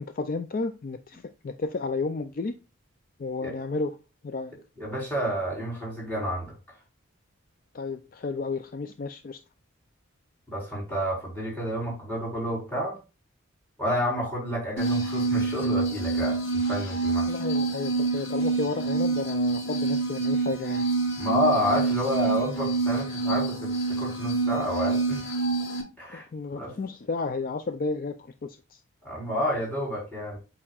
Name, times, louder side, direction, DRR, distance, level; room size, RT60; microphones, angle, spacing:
voice 1, 0.0-2.5 3.2-4.0 4.2-4.5 7.7-9.4 17.3-20.9 26.1-28.8, left 3 dB, 40° left, 0.4 m, -32 dB
voice 2, 4.8-6.5 10.5-13.0 13.8-16.4 16.7-17.4 21.2-23.7 24.0-25.2 26.0-26.3 26.6-26.7 29.0-30.4, equal, 10° left, 3.9 m, -29 dB
sound 1, 14.8-25.8, right 3 dB, 65° left, 3.3 m, -27 dB
8.5 x 5.4 x 2.4 m
head